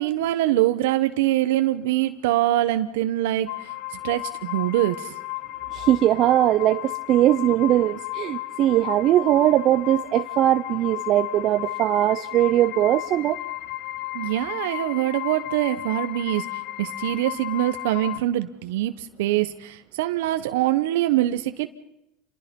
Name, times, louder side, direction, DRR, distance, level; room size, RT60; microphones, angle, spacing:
voice 1, 0.0-3.7 4.0-5.1 14.1-21.7, right 14 dB, 80° right, 9 dB, 1.1 m, -24 dB
sound 1, 3.5-18.2, left 18 dB, 60° left, 1.0 m, -34 dB
voice 2, 5.7-13.4, right 13 dB, 50° right, 10 dB, 0.8 m, -20 dB
28.0 x 22.5 x 5.4 m, 0.85 s
supercardioid pair, 100°, 0 cm